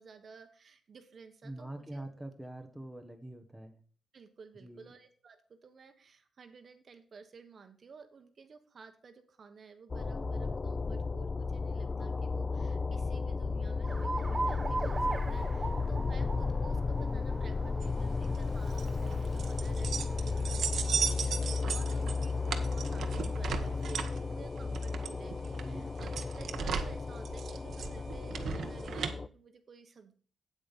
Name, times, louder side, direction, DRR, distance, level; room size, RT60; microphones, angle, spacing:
voice 1, 0.0-2.1 4.1-30.1, right 5 dB, 45° right, 7 dB, 1.2 m, -53 dB
voice 2, 1.4-3.8 4.5-4.9 25.6-25.9, right 1 dB, ahead, 3 dB, 1.3 m, -44 dB
sound 1, 9.9-29.3, left 4 dB, 30° left, 0.4 m, -34 dB
Alarm, 13.8-23.9, right 3 dB, 25° right, 1.0 m, -41 dB
sound 2, 17.8-29.1, right 6 dB, 70° right, 1.1 m, -37 dB
8.7 x 8.6 x 4.2 m, 0.42 s
wide cardioid pair, 140°, 0 cm